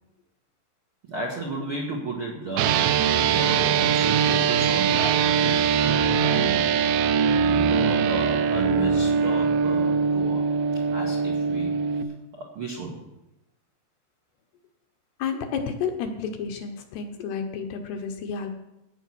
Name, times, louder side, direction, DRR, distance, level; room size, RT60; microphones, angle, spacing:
voice 1, 1.1-6.7 7.4-10.4 10.9-11.8 12.3-13.1, right 2 dB, 60° right, -2 dB, 1.4 m, -33 dB
sound 1, 2.6-12.0, right 6 dB, 80° right, 2.9 m, -22 dB
voice 2, 15.2-18.5, left 6 dB, 70° left, 5 dB, 2.7 m, -31 dB
16.0 x 8.2 x 6.2 m, 0.93 s
omnidirectional pair, 5.3 m